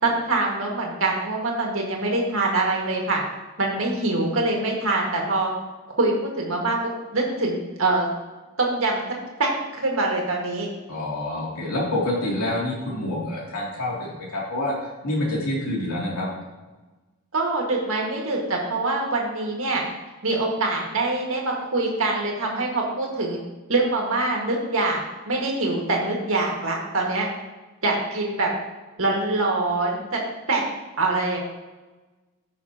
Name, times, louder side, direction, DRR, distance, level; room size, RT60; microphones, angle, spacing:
voice 1, 0.0-3.2 3.6-5.5 6.0-8.1 8.6-9.0 9.4-10.7 17.3-19.8 20.2-23.4 23.7-25.0 25.3-27.3 27.8-28.5 29.0-30.2 30.5-30.6 31.0-31.4, right 2 dB, 70° right, -1 dB, 1.9 m, -24 dB
voice 2, 10.9-14.7 15.0-16.3, left 1 dB, 90° left, -4 dB, 2.9 m, -27 dB
14.5 x 5.7 x 2.9 m, 1.2 s
head